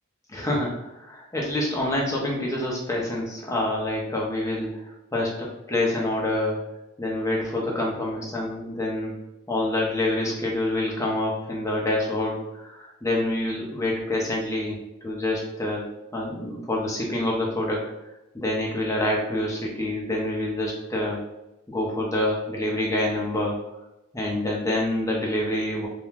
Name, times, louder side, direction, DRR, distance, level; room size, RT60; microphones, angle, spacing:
voice 1, 0.3-6.6 7.0-9.2 9.5-14.8 15.0-15.9 16.1-17.8 18.3-21.2 21.7-23.6 24.1-25.9, left 1 dB, 15° left, -3 dB, 0.6 m, -27 dB
3.2 x 2.2 x 2.4 m, 0.94 s
head